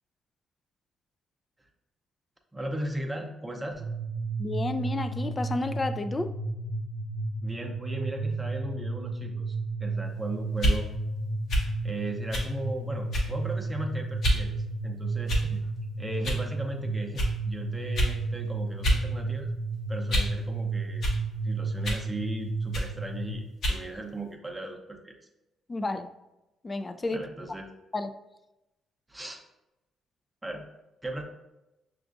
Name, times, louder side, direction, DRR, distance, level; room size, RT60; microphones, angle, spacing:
voice 1, 2.5-3.8 7.4-10.9 11.8-14.5 14.8-15.6 16.0-19.5 19.9-21.1 21.4-25.1 27.1-27.7 29.1-29.4 30.4-30.6 31.0-31.2, right 1 dB, 15° right, 2 dB, 0.7 m, -37 dB
sound 1, 3.8-23.3, right 3 dB, 55° right, 0.8 m, -33 dB
voice 2, 4.4-6.3 25.7-26.1 26.6-27.2 27.9-28.1, left 2 dB, 25° left, 9 dB, 0.3 m, -31 dB
sound 2, 10.5-10.8 11.5-11.7 12.3-12.5 13.1-13.4 14.2-14.4 15.3-15.6 16.2-16.4 17.1-17.3 17.9-18.2 18.8-19.0 19.4-20.4 21.0-21.2 21.8-22.1 22.7-22.9 23.6-23.8, equal, 65° left, 0.9 m, -26 dB
5.7 x 2.4 x 2.5 m, 0.96 s
cardioid pair, 90°, 0 cm